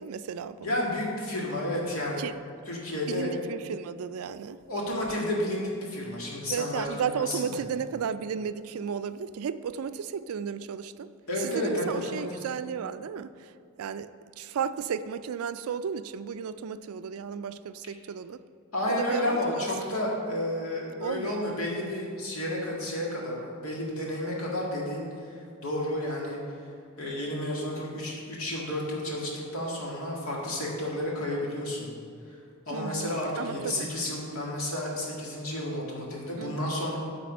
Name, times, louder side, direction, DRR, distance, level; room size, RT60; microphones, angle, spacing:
voice 1, 0.0-0.7 2.2-2.3 3.1-4.6 6.5-11.1 11.4-13.5 13.8-14.1 14.4-18.4 18.9-20.0 21.0-21.5 32.7-33.9 36.4-36.7, right 7 dB, 80° right, 13 dB, 0.4 m, -34 dB
voice 2, 0.6-2.2 2.7-3.3 4.7-7.6 11.3-12.2 18.7-26.4 27.0-31.9 32.3-32.4 32.7-37.0, left 1 dB, 75° left, -3 dB, 2.0 m, -31 dB
12.0 x 4.1 x 5.2 m, 2.4 s
head